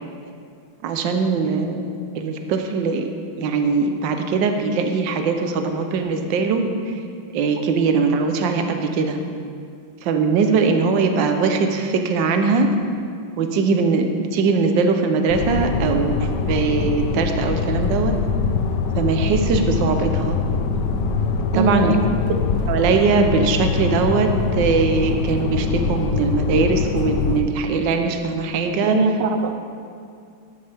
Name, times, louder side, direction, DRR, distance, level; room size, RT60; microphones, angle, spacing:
voice 1, 0.8-3.1 3.4-7.0 7.3-9.2 10.0-12.7 13.4-18.1 19.0-20.4 21.5-21.9 22.7-29.0, right 4 dB, 70° right, 5 dB, 1.5 m, -21 dB
sound 1, 15.3-27.4, left 4 dB, 70° left, 1.2 m, -23 dB
voice 2, 21.5-22.2 28.8-29.5, right 4 dB, 90° right, 6 dB, 1.6 m, -21 dB
12.5 x 11.0 x 3.5 m, 2.3 s
omnidirectional pair, 2.2 m